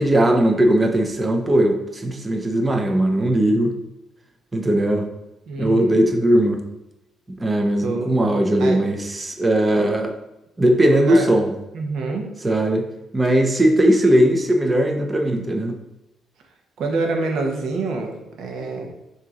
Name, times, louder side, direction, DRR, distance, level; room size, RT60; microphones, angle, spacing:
voice 1, 0.0-3.8 4.5-5.1 5.6-6.6 7.4-10.1 10.6-11.5 12.4-12.9 13.1-15.8, right 1 dB, 15° right, 4 dB, 0.6 m, -18 dB
voice 2, 5.5-6.0 7.8-8.2 8.6-8.8 10.9-11.3 11.7-12.3 16.8-18.9, right 3 dB, 60° right, 2 dB, 1.1 m, -26 dB
6.5 x 2.9 x 5.0 m, 0.96 s
cardioid pair, 175°, 0 cm